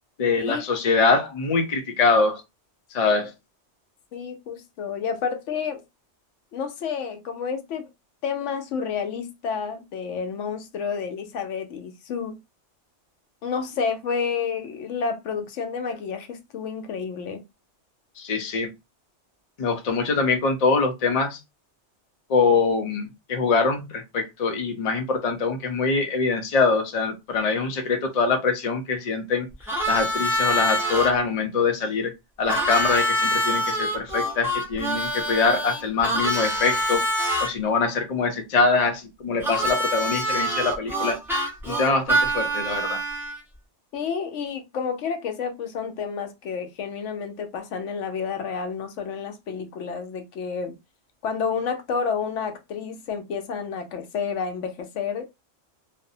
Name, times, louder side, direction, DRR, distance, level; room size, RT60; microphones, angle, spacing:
voice 1, 0.2-2.4 2.9-3.3 18.2-18.7 19.6-21.4 22.3-29.5 29.9-32.1 32.4-37.0 37.4-41.2 41.7-43.0, left 4 dB, 45° left, 0.5 m, -23 dB
voice 2, 4.1-5.8 6.5-7.9 8.2-12.4 13.4-17.4 43.9-50.7 51.2-55.2, left 6 dB, 85° left, 0.9 m, -30 dB
Harmonica, 29.7-31.1 32.5-37.5 39.4-43.4, equal, 5° right, 0.5 m, -25 dB
2.6 x 2.0 x 2.6 m
omnidirectional pair, 1.2 m